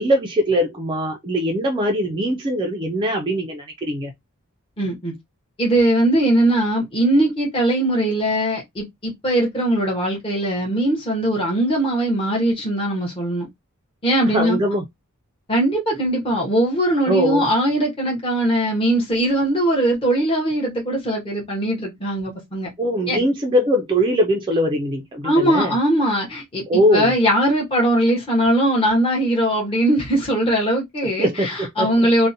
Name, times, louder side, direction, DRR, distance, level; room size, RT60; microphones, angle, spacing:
voice 1, 0.0-4.1 14.3-14.8 17.1-17.5 22.8-25.8 26.7-27.1 31.2-31.9, equal, 20° right, 0.3 m, -21 dB
voice 2, 4.8-5.1 5.6-13.5 14.0-14.6 15.5-22.7 23.1-23.2 25.2-32.3, right 1 dB, 25° left, 0.7 m, -20 dB
2.5 x 2.1 x 2.6 m
head